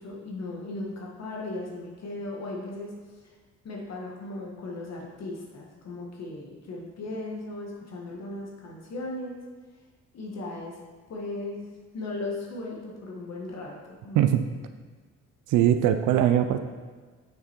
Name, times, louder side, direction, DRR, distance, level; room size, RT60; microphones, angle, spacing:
voice 1, 0.0-2.9 3.6-9.4 10.1-10.8 11.1-11.7 11.9-14.2, left 2 dB, 60° left, -2 dB, 1.6 m, -37 dB
voice 2, 15.5-16.6, right 11 dB, 85° right, 9 dB, 0.5 m, -21 dB
6.5 x 5.9 x 4.5 m, 1.5 s
cardioid pair, 90°, 30 cm